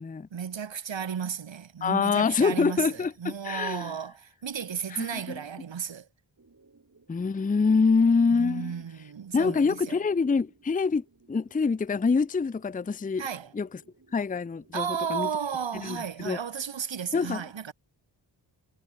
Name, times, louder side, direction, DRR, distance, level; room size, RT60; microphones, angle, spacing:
voice 1, 0.3-6.1 8.3-10.0 13.2-13.5 14.7-17.7, right 7 dB, 85° right, 1.7 m, -34 dB
voice 2, 1.8-3.9 4.9-5.4 7.1-8.8 9.3-13.2 13.5-13.7 14.1-15.3 15.8-16.4 17.1-17.4, left 4 dB, 20° left, 0.5 m, -25 dB
sound 1, 6.4-15.1, right 3 dB, 40° right, 5.5 m, -61 dB
wide cardioid pair, 95°, 44 cm